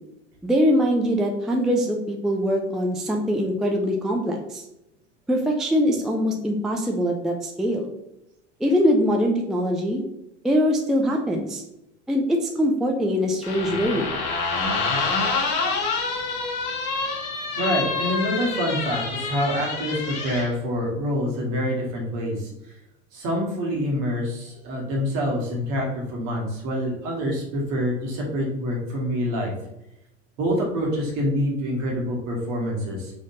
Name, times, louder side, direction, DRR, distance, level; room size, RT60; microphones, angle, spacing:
voice 1, 0.4-4.6 5.3-7.9 8.6-10.0 10.4-11.6 12.1-14.1, equal, ahead, 2 dB, 0.4 m, -23 dB
sound 1, 13.4-20.5, left 4 dB, 50° left, 1.1 m, -27 dB
voice 2, 17.5-22.5 23.1-29.5 30.4-33.1, equal, 60° right, -1 dB, 1.5 m, -26 dB
3.8 x 3.4 x 2.6 m, 0.86 s
hypercardioid pair, 80°, 35 cm